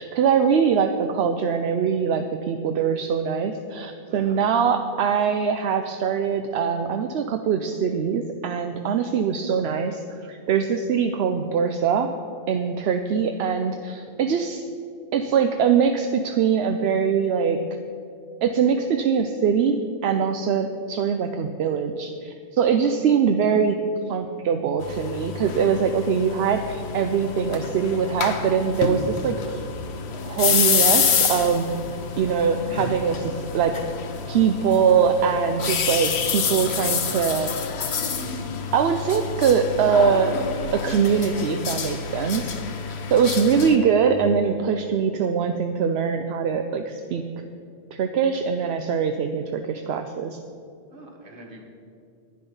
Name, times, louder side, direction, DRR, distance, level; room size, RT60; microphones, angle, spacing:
voice 1, 0.0-12.1 12.5-14.6 15.1-17.6 18.4-19.8 20.0-23.8 24.1-29.6 30.2-31.7 32.2-33.8 34.3-37.5 38.7-40.4 40.7-42.5 43.1-47.2 47.9-50.4, right 6 dB, 80° right, 6 dB, 0.9 m, -22 dB
voice 2, 0.5-1.0 4.1-4.4 13.9-14.1 22.9-23.0 43.1-43.4 50.9-51.6, right 1 dB, 55° right, 0 dB, 1.9 m, -44 dB
sound 1, 24.8-43.8, left 6 dB, 80° left, 1.1 m, -28 dB
11.0 x 9.9 x 5.4 m, 2.4 s
omnidirectional pair, 1.1 m